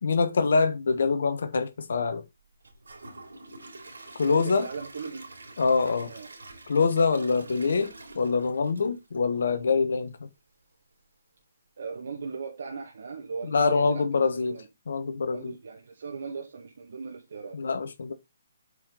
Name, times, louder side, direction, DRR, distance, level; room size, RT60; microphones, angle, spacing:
voice 1, 0.0-2.2 4.1-4.7 5.6-6.1 6.7-10.1 13.5-14.6 14.9-15.5 17.5-18.1, left 4 dB, 70° left, 1.3 m, -25 dB
Gurgling / Toilet flush / Trickle dribble, 2.6-9.7 10.1-10.2 10.7-10.8, right 2 dB, 85° right, 3.4 m, -47 dB
voice 2, 4.2-5.3 6.0-6.3 7.0-7.5 11.8-14.7 15.2-17.6, right 5 dB, 65° right, 2.0 m, -39 dB
8.4 x 5.0 x 4.0 m
hypercardioid pair, 145°, 0 cm